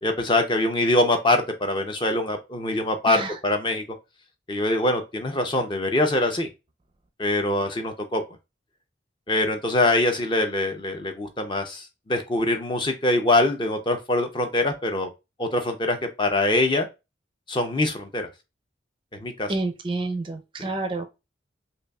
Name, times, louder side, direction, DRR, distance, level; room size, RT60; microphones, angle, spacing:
voice 1, 0.0-3.8 4.5-6.5 7.2-8.2 9.3-15.1 15.4-16.9 17.5-18.3 19.2-19.5, left 2 dB, 25° left, 5 dB, 0.5 m, -23 dB
voice 2, 19.5-21.1, right 2 dB, 30° right, 7 dB, 0.5 m, -29 dB
5.3 x 2.3 x 2.2 m, 0.25 s
head